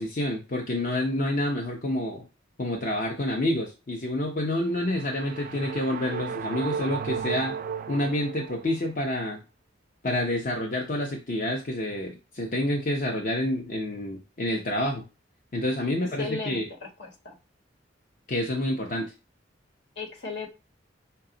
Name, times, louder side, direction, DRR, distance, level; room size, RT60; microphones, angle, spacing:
voice 1, 0.0-2.3 2.6-7.6 7.9-9.4 10.0-15.1 15.5-16.7 18.3-19.1, left 1 dB, 45° left, 0 dB, 0.8 m, -28 dB
sound 1, 4.6-8.9, right 6 dB, 45° right, 0.3 m, -34 dB
voice 2, 16.2-17.3 20.0-20.5, left 3 dB, 65° left, 0 dB, 1.3 m, -36 dB
5.6 x 2.3 x 3.8 m, 0.29 s
head